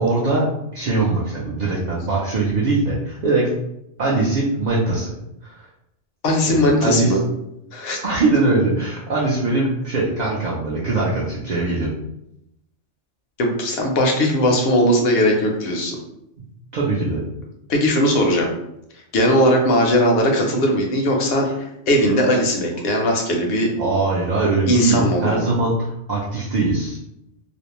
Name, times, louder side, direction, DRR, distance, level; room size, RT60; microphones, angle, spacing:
voice 1, 0.0-3.5 4.0-5.2 5.4-5.6 6.5-7.2 8.0-11.9 14.1-14.3 16.7-17.2 23.8-27.0, right 3 dB, 60° right, -5 dB, 0.5 m, -21 dB
voice 2, 6.2-7.2 7.7-8.0 13.4-16.0 17.7-18.5 19.1-21.5 21.9-23.7 24.7-25.5, equal, 65° left, 1 dB, 0.7 m, -18 dB
2.5 x 2.0 x 2.9 m, 0.82 s
omnidirectional pair, 1.3 m